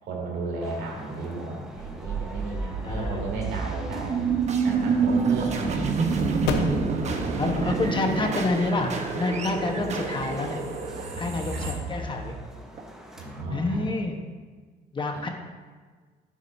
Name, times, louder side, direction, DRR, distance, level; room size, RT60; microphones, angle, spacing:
voice 1, 0.0-4.2 4.6-5.9 6.7-7.6 11.5-11.7 13.2-13.8 15.1-15.2, right 3 dB, 80° right, -2 dB, 2.9 m, -34 dB
sound 1, 0.6-13.4, equal, 5° right, 1.2 m, -46 dB
sound 2, 1.8-12.8, right 5 dB, 40° right, 1.1 m, -28 dB
voice 2, 2.8-3.2 6.1-6.9 7.4-10.6 11.2-12.3 13.5-14.2 14.9-15.3, left 2 dB, 30° left, 3 dB, 1.2 m, -28 dB
sound 3, 6.4-11.1, left 4 dB, 90° left, 1.1 m, -37 dB
11.0 x 9.1 x 2.7 m, 1.5 s
cardioid pair, 110°, 17 cm